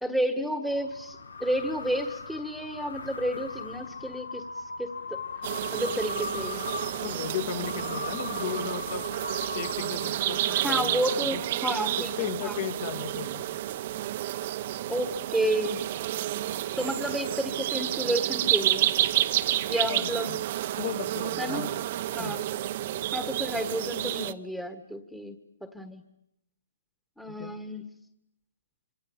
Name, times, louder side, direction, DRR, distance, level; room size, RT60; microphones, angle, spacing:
voice 1, 0.0-4.4 4.8-5.2 5.7-6.7 10.5-12.6 14.9-15.8 16.8-18.9 19.7-20.3 21.4-21.7 22.1-22.4 23.1-25.3 25.6-26.0 27.2-27.8, equal, ahead, 9 dB, 1.6 m, -31 dB
sound 1, 0.7-10.4, left 4 dB, 85° left, 1.9 m, -39 dB
sound 2, 5.4-24.3, right 13 dB, 45° right, 1.0 m, -30 dB
voice 2, 7.0-9.0 9.5-11.4 12.2-13.5 19.9-20.4 20.8-21.7 22.2-22.4 27.2-27.5, left 9 dB, 45° left, 9 dB, 2.2 m, -36 dB
26.0 x 25.0 x 8.8 m, 0.80 s
hypercardioid pair, 145°, 0 cm